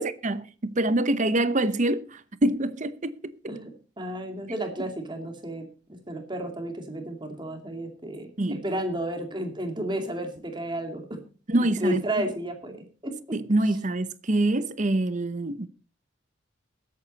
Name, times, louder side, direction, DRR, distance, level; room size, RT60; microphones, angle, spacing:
voice 1, 0.0-2.0 2.4-3.2 8.4-8.6 11.5-12.0 13.3-15.7, right 1 dB, 40° right, 0.9 m, -25 dB
voice 2, 4.0-11.2 11.6-13.4, right 1 dB, 25° right, 2.4 m, -32 dB
20.5 x 8.6 x 4.1 m
head